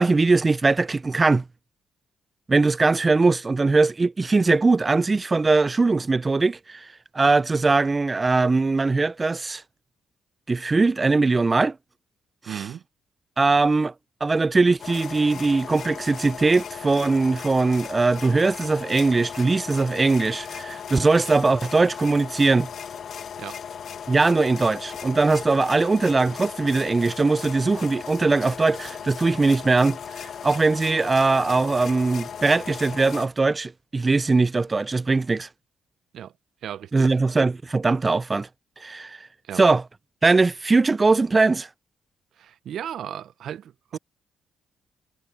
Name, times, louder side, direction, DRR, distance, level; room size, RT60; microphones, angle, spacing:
voice 1, 0.0-1.4 2.5-6.9 7.1-9.6 10.5-11.8 12.5-12.6 13.4-13.9 14.2-22.7 24.1-30.0 30.4-35.5 36.9-38.5 38.8-39.2 39.6-39.8 40.2-41.7, right 3 dB, 25° right, 0.3 m, -21 dB
voice 2, 12.5-12.8 23.4-23.6 36.1-36.3 36.6-37.1 39.4-39.6 42.4-44.0, right 10 dB, 70° right, 0.6 m, -35 dB
sound 1, 14.8-33.3, left 7 dB, 60° left, 1.5 m, -37 dB
cardioid pair, 90°, 0 cm